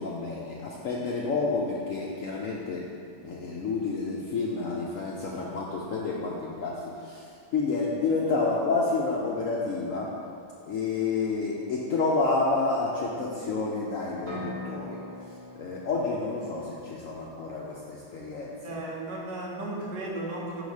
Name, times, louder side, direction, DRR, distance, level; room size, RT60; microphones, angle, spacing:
voice 1, 0.0-2.9 3.2-7.2 7.5-10.1 10.7-15.0 15.6-18.8, left 3 dB, 80° left, -4 dB, 0.7 m, -29 dB
sound 1, 14.3-18.0, left 1 dB, 25° right, 1.5 m, -43 dB
voice 2, 18.6-20.6, right 2 dB, 65° right, -2 dB, 1.5 m, -35 dB
4.8 x 4.0 x 5.3 m, 2.3 s
omnidirectional pair, 2.1 m